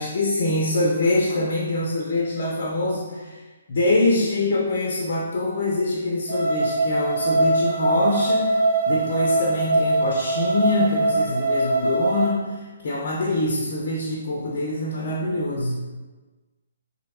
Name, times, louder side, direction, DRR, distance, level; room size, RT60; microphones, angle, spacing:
voice 1, 0.0-3.4 3.7-15.8, left 2 dB, 50° left, -3 dB, 0.5 m, -24 dB
sound 1, 6.3-12.3, right 2 dB, 50° right, 0.8 m, -22 dB
3.3 x 2.8 x 2.6 m, 1.3 s
figure-of-eight pair, 135°, 0 cm